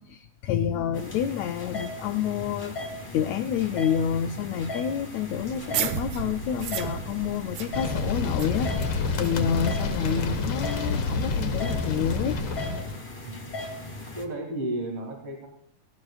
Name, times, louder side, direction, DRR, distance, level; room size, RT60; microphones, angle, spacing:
voice 1, 0.1-2.7 3.1-12.4, left 8 dB, 80° left, 6 dB, 1.5 m, -28 dB
voice 2, 0.7-1.0 2.5-2.6 13.2-13.5 14.1-15.5, right 1 dB, 45° right, 0 dB, 3.4 m, -34 dB
sound 1, 0.9-14.2, left 1 dB, 15° left, 1.3 m, -38 dB
sound 2, 5.4-10.8, right 8 dB, 70° right, 1.9 m, -35 dB
sound 3, 7.7-13.0, left 4 dB, 55° left, 1.8 m, -28 dB
18.5 x 17.0 x 2.4 m, 0.72 s
omnidirectional pair, 3.7 m